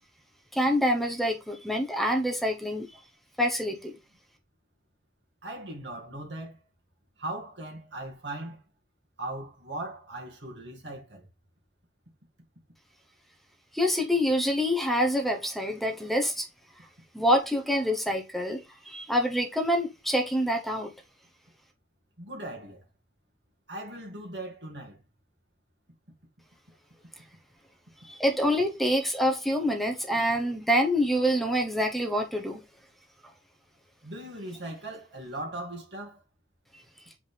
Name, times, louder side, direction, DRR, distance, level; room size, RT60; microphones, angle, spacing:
voice 1, 0.5-3.0 3.4-3.9 13.7-16.5 17.1-20.9 28.0-32.6, equal, ahead, 0.9 m, -26 dB
voice 2, 5.4-6.6 7.2-8.6 9.2-11.3 22.2-22.8 23.7-25.0 34.0-36.2, right 1 dB, 75° right, 2.2 m, -39 dB
8.2 x 5.2 x 3.4 m
head